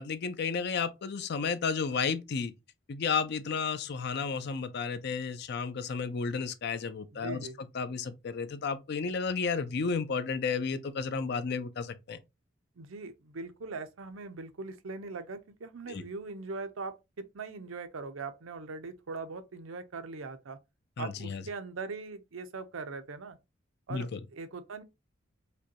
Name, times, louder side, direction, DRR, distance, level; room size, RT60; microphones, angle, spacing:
voice 1, 0.0-2.5 2.9-7.5 7.7-12.2 15.9-16.0 21.0-21.4 23.9-24.2, left 5 dB, 55° left, 0.4 m, -32 dB
voice 2, 7.1-7.6 12.8-20.6 21.0-23.4 23.9-24.8, right 4 dB, 80° right, 0.6 m, -41 dB
5.0 x 2.2 x 2.8 m
head